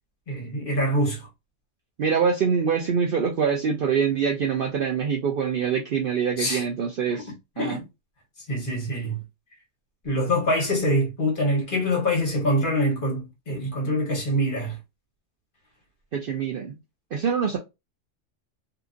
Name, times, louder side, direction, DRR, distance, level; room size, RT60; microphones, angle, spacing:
voice 1, 0.3-1.3 6.4-6.6 7.1-7.2 7.6-7.8 8.5-9.2 10.0-14.8, equal, 45° left, 1.2 m, -25 dB
voice 2, 2.0-7.3 7.6-7.8 16.1-16.7 17.1-17.6, right 6 dB, 60° right, 0.6 m, -24 dB
2.8 x 2.6 x 2.4 m
omnidirectional pair, 1.3 m